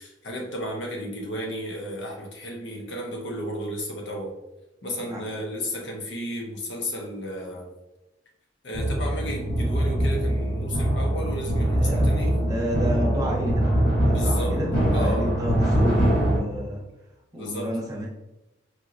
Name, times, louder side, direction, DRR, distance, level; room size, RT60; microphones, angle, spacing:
voice 1, 0.0-4.3 4.8-7.7 8.6-12.4 14.1-14.6 14.9-15.3 17.3-17.7, equal, 85° left, 0 dB, 0.9 m, -33 dB
sound 1, 8.7-16.4, right 1 dB, 50° left, 1.2 m, -23 dB
voice 2, 12.4-13.7 14.0-16.8 17.3-18.1, equal, 20° right, -4 dB, 1.0 m, -31 dB
4.4 x 2.9 x 2.5 m, 0.97 s
head